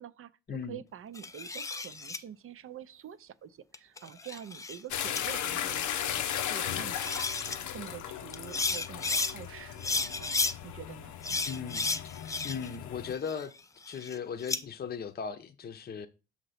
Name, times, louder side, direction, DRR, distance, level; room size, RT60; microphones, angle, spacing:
voice 1, 0.0-0.3 0.7-7.2 7.5-11.1, right 9 dB, 45° right, 0.5 m, -46 dB
sound 1, 1.2-2.2 3.7-4.8 5.2-5.3 6.6-6.7 6.9-7.6 8.3-9.3 9.8-10.5 11.2-12.8 13.1-14.6, left 3 dB, 10° left, 0.3 m, -33 dB
sound 2, 4.9-13.1, left 10 dB, 75° left, 0.6 m, -36 dB
voice 2, 11.5-11.9 12.4-13.5 13.8-16.1, left 6 dB, 30° left, 0.7 m, -37 dB
6.5 x 2.9 x 5.7 m
cardioid pair, 90°, 30 cm